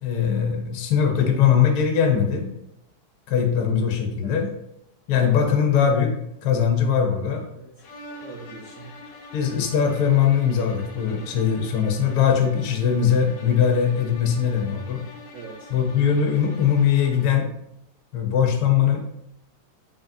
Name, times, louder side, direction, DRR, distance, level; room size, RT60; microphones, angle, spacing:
voice 1, 0.0-2.5 3.3-4.5 5.1-6.1 6.4-7.4 9.3-15.0 15.7-17.5 18.1-19.0, left 7 dB, 65° left, 3 dB, 1.0 m, -21 dB
sound 1, 7.8-17.5, left 2 dB, 85° left, 1.3 m, -44 dB
voice 2, 8.2-8.9 15.3-15.7, right 4 dB, 70° right, -2 dB, 0.7 m, -42 dB
5.1 x 2.6 x 2.6 m, 0.80 s
omnidirectional pair, 1.9 m